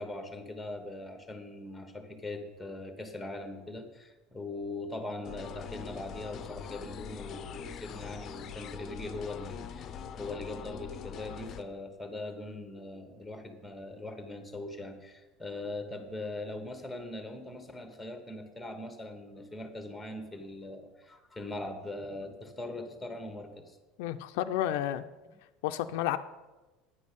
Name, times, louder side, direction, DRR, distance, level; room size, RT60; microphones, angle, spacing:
voice 1, 0.0-23.8, left 2 dB, 5° left, 6 dB, 1.2 m, -41 dB
sound 1, 5.2-11.6, left 8 dB, 35° left, 0.6 m, -43 dB
voice 2, 24.0-25.0 25.6-26.2, left 12 dB, 80° left, 9 dB, 0.5 m, -31 dB
9.8 x 5.3 x 8.2 m, 1.1 s
cardioid pair, 150°, 0 cm